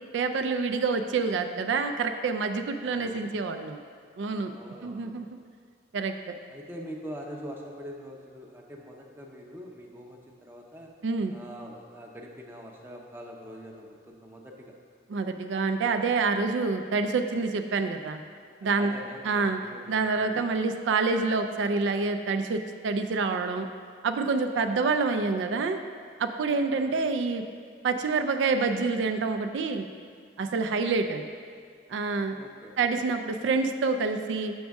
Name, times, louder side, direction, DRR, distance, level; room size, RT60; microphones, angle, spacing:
voice 1, 0.1-3.8 4.2-4.5 4.8-5.3 5.9-6.3 11.0-11.3 15.1-18.2 18.6-18.9 19.2-19.6 19.9-23.7 24.0-25.8 26.2-27.4 27.8-29.9 30.4-31.3 31.9-32.4 32.8-34.5, right 4 dB, 80° right, 6 dB, 0.4 m, -27 dB
voice 2, 2.8-3.2 4.5-5.1 6.5-10.9 11.3-14.8 18.8-20.5 26.7-27.1 32.3-32.8, equal, 10° right, -1 dB, 0.5 m, -44 dB
6.2 x 6.2 x 3.5 m, 2.1 s
head